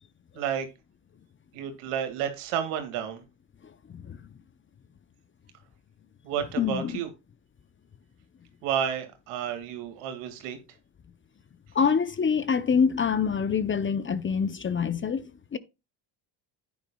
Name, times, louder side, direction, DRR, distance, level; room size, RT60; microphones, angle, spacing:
voice 1, 0.4-0.7 1.5-3.2 6.2-7.1 8.6-10.6, right 9 dB, 85° right, 2.2 m, -31 dB
voice 2, 6.6-6.9 11.7-15.6, left 6 dB, 25° left, 0.6 m, -25 dB
10.0 x 9.4 x 2.3 m
cardioid pair, 95°, 49 cm